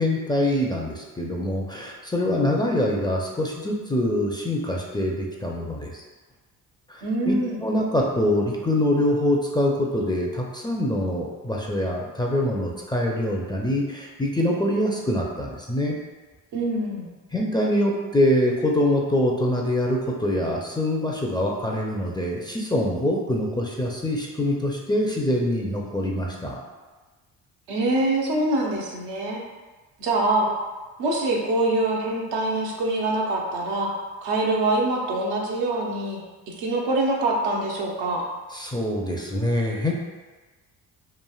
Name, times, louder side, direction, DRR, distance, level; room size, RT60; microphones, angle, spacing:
voice 1, 0.0-6.0 6.9-7.3 7.6-16.0 17.3-26.6 38.5-39.9, left 1 dB, 10° left, -2 dB, 0.4 m, -24 dB
voice 2, 7.0-7.6 16.5-17.1 27.7-29.4 30.0-30.5 31.0-33.9 34.2-36.2 36.6-38.3, right 2 dB, 80° right, -1 dB, 0.7 m, -24 dB
3.1 x 2.5 x 2.3 m, 1.3 s
supercardioid pair, 60°, 41 cm